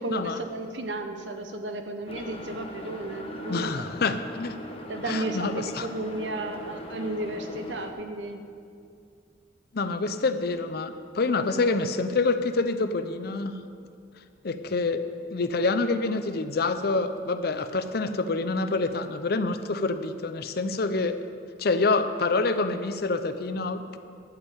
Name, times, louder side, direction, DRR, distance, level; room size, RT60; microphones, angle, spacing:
voice 1, 0.0-3.8 4.9-8.4, right 2 dB, 75° right, 6 dB, 0.9 m, -33 dB
sound 1, 2.1-7.9, left 1 dB, 30° left, 1.0 m, -40 dB
voice 2, 3.5-4.5 5.1-5.9 9.7-13.5 14.4-15.0 15.3-21.2 21.6-24.0, left 3 dB, 55° left, 10 dB, 0.6 m, -27 dB
11.5 x 5.5 x 8.2 m, 2.3 s
head